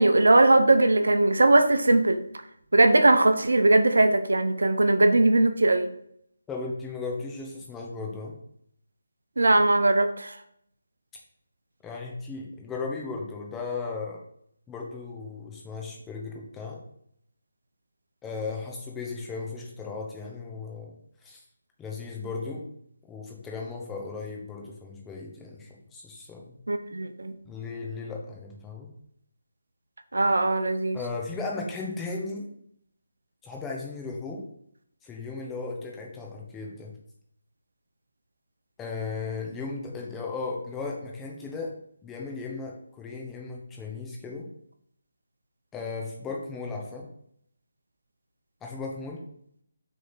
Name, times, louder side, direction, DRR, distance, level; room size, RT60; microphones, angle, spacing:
voice 1, 0.0-2.2 2.7-5.9 9.4-10.3 26.7-27.3 30.1-31.0, right 2 dB, 80° right, 9 dB, 0.8 m, -20 dB
voice 2, 6.5-8.4 11.8-14.2 14.7-16.8 18.2-20.9 21.2-21.4 21.8-22.6 23.1-26.5 27.4-28.9 30.9-32.5 33.4-34.4 35.0-36.9 38.8-41.7 42.0-44.5 45.7-47.1 48.6-49.2, left 4 dB, 10° left, -1 dB, 1.3 m, -36 dB
6.5 x 3.8 x 6.1 m, 0.69 s
figure-of-eight pair, 160°, 0 cm